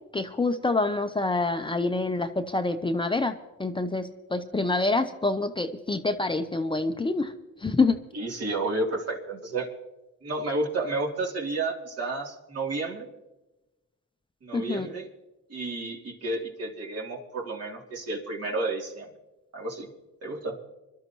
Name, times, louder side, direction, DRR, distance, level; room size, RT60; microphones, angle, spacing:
voice 1, 0.1-7.3 7.6-8.0 14.5-14.9, left 3 dB, 15° left, 7 dB, 0.7 m, -26 dB
voice 2, 8.1-9.7 10.2-13.1 14.4-15.1 15.5-19.1 19.5-19.9 20.2-20.6, right 2 dB, 55° right, -1 dB, 3.3 m, -31 dB
25.0 x 12.0 x 3.1 m, 1.0 s
cardioid pair, 90°, 30 cm